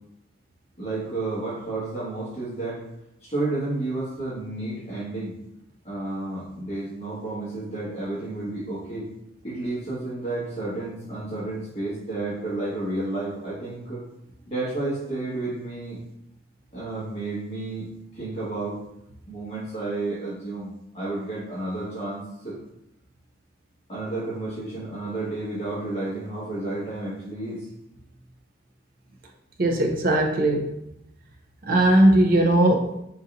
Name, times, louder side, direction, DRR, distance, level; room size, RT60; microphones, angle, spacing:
voice 1, 0.8-2.8 3.2-5.4 5.8-9.1 9.4-14.0 14.5-16.0 16.7-17.9 18.1-18.8 19.3-22.6 23.9-27.7, right 2 dB, 30° left, -9 dB, 1.6 m, -31 dB
voice 2, 29.6-30.7 31.7-32.9, right 1 dB, 45° right, 0 dB, 0.5 m, -19 dB
4.0 x 3.9 x 2.6 m, 0.81 s
head